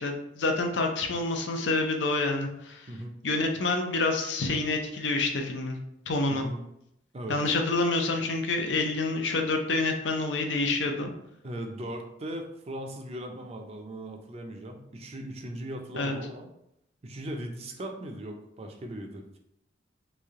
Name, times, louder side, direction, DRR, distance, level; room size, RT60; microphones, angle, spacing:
voice 1, 0.0-2.9 3.2-5.8 6.1-6.5 7.3-11.1 15.9-16.1, left 3 dB, 80° left, 4 dB, 0.6 m, -27 dB
voice 2, 6.3-6.6 7.1-7.4 11.4-16.5 17.0-19.4, right 1 dB, 35° right, 3 dB, 0.5 m, -38 dB
3.1 x 2.6 x 3.6 m, 0.78 s
head